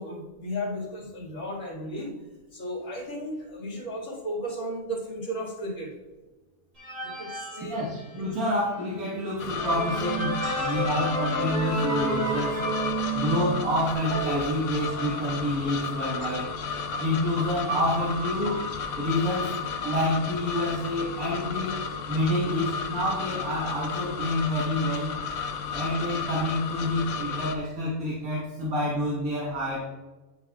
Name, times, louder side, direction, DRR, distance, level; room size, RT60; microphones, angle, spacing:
voice 1, 0.0-2.1 2.5-5.9 7.0-7.8 10.4-10.9 13.0-13.2 16.2-16.3, equal, 60° left, -2 dB, 2.5 m, -35 dB
sound 1, 6.8-8.4 8.9-9.0 9.4-13.9, right 2 dB, 60° right, 2.9 m, -30 dB
voice 2, 7.6-12.6 13.1-16.6 17.0-18.6 19.0-19.6 19.8-21.8 22.1-25.1 25.7-29.8, left 1 dB, 75° right, -6 dB, 2.0 m, -28 dB
sound 2, 9.4-27.6, left 6 dB, 80° left, 1.2 m, -33 dB
sound 3, 14.1-21.6, right 3 dB, 15° right, 1.4 m, -39 dB
9.6 x 7.0 x 2.4 m, 1.2 s
omnidirectional pair, 1.5 m